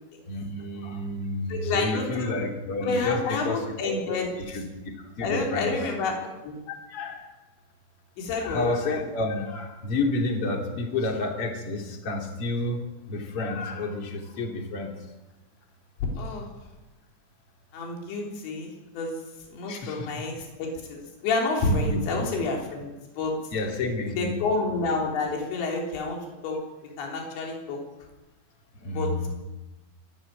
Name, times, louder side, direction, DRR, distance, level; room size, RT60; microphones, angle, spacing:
voice 1, 0.3-4.2 4.5-5.7 6.7-7.3 8.4-12.8 13.1-14.9 19.7-20.1 21.8-22.0 23.5-24.4 28.8-29.3, left 2 dB, 35° left, 2 dB, 3.1 m, -30 dB
voice 2, 1.5-2.4 2.8-4.3 5.2-6.2 6.4-6.6 8.2-8.6 16.2-16.5 17.7-19.2 19.5-22.9 23.2-23.3 24.2-26.2 26.4-26.6 27.0-27.8 28.9-29.1, left 3 dB, 80° left, 0 dB, 5.7 m, -29 dB
25.0 x 11.5 x 9.3 m, 1.1 s
omnidirectional pair, 5.2 m